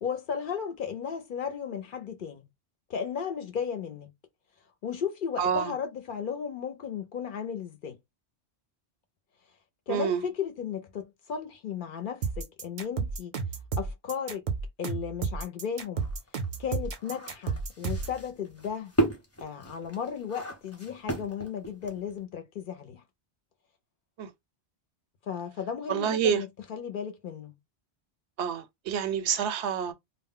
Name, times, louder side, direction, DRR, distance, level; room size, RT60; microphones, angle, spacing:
voice 1, 0.0-2.4 2.9-4.1 4.8-8.0 9.9-13.4 13.8-14.5 14.8-16.1 16.6-18.9 19.4-23.0 25.2-27.6, left 7 dB, 60° left, 0.6 m, -35 dB
voice 2, 5.4-5.7 9.9-10.2 24.2-24.3 25.9-26.4 28.4-29.9, right 8 dB, 85° right, 0.9 m, -27 dB
sound 1, 12.2-18.2, right 5 dB, 55° right, 0.6 m, -32 dB
sound 2, 16.0-22.2, right 2 dB, 15° left, 0.7 m, -33 dB
2.1 x 2.0 x 3.6 m
omnidirectional pair, 1.1 m